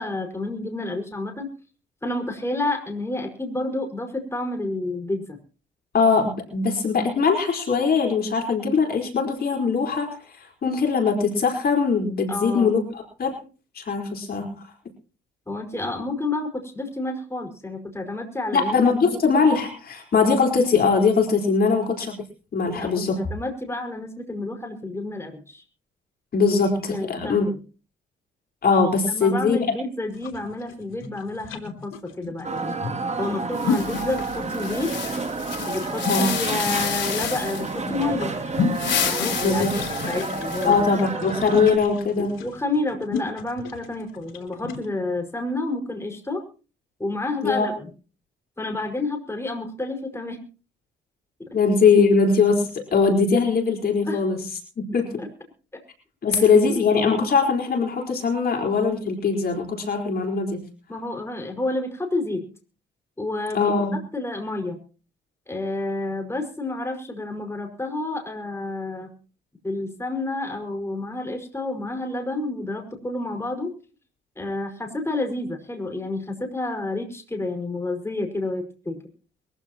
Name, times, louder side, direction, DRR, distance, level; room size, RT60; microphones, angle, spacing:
voice 1, 0.0-1.5 2.0-5.4 12.3-12.7 15.5-18.8 19.1-19.2 22.7-25.6 26.6-27.6 29.1-32.8 33.2-34.9 35.7-38.4 39.0-40.9 42.2-46.4 47.0-47.9 48.6-50.4 54.1-54.2 55.2-55.3 55.7-55.8 56.3-56.7 60.9-62.4 63.2-64.8 65.5-69.1 69.6-73.7 74.4-79.0, left 2 dB, 15° left, 3 dB, 5.3 m, -30 dB
voice 2, 5.9-13.4 13.7-14.5 18.5-22.2 22.5-23.2 26.3-27.4 28.6-29.6 36.1-36.3 39.4-39.8 40.6-42.4 47.4-47.7 51.5-54.5 54.8-55.2 56.2-60.6 63.5-64.0, left 5 dB, 50° left, 2 dB, 4.5 m, -21 dB
sound 1, 30.1-44.9, left 6 dB, 85° left, 3.2 m, -33 dB
sound 2, 32.4-41.8, right 4 dB, 35° right, 2.7 m, -30 dB
sound 3, 33.6-37.8 38.6-40.9, left 8 dB, 70° left, 4.2 m, -30 dB
23.0 x 15.0 x 3.0 m, 0.36 s
cardioid pair, 90°, 20 cm